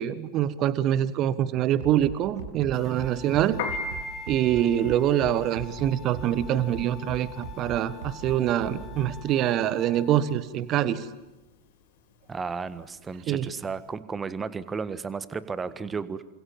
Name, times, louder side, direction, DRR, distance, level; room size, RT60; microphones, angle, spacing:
voice 1, 0.0-3.6 4.3-11.1 13.3-13.5, right 11 dB, 35° right, 16 dB, 1.2 m, -25 dB
Bass drum, 1.8-9.2, right 5 dB, 60° right, 6.1 m, -39 dB
sound 1, 2.7-10.4, left 8 dB, 25° left, 2.3 m, -47 dB
Piano, 3.4-13.8, left 3 dB, 50° left, 4.0 m, -39 dB
voice 2, 12.3-16.2, right 5 dB, 15° right, 14 dB, 1.4 m, -33 dB
28.5 x 25.5 x 7.6 m, 1.1 s
figure-of-eight pair, 90°, 0 cm